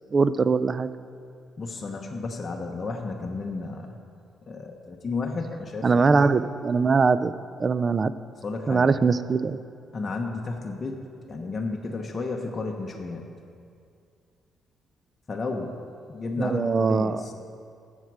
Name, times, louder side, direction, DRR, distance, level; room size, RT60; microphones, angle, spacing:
voice 1, 0.1-0.9 5.8-7.3 7.6-8.1 8.7-9.6 16.4-17.2, right 4 dB, 35° right, 14 dB, 0.4 m, -22 dB
voice 2, 1.6-3.9 4.5-5.8 8.4-8.9 9.9-11.0 11.3-13.3 15.3-15.8 16.1-17.3, left 3 dB, 35° left, 1 dB, 1.0 m, -32 dB
13.0 x 7.4 x 4.7 m, 2.4 s
cardioid pair, 90°, 0 cm